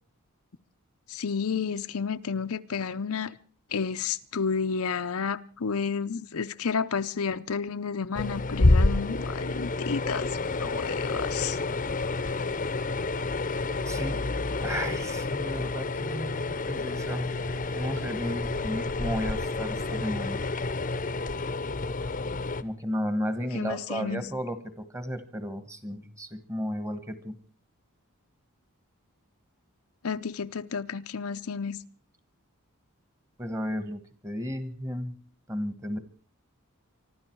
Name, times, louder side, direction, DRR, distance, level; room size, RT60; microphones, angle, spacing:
voice 1, 1.1-3.4 3.7-11.6 23.5-24.2 30.0-31.8, left 5 dB, 75° left, 0.7 m, -31 dB
sound 1, 8.1-22.6, left 2 dB, 35° left, 0.8 m, -29 dB
voice 2, 13.9-17.4 17.7-20.4 22.6-27.3 33.4-35.1 35.5-36.0, equal, 15° right, 1.4 m, -34 dB
24.5 x 12.5 x 4.6 m
head